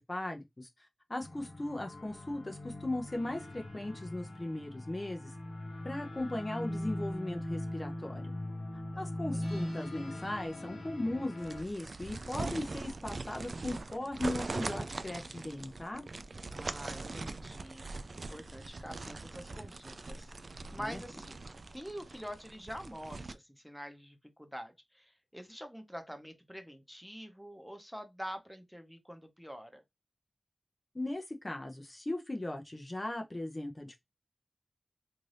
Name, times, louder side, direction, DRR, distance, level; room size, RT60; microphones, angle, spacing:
voice 1, 0.1-5.3 5.8-8.3 9.0-16.0 20.8-21.0 30.9-33.9, left 1 dB, 30° left, 0.6 m, -38 dB
sound 1, 1.2-11.6, left 1 dB, 75° left, 0.9 m, -40 dB
voice 2, 8.9-9.5 16.5-20.3 20.7-21.4 21.7-29.8, equal, ahead, 0.8 m, -46 dB
sound 2, 11.4-23.3, right 3 dB, 60° right, 0.3 m, -42 dB
2.6 x 2.6 x 3.2 m
wide cardioid pair, 55°, 0 cm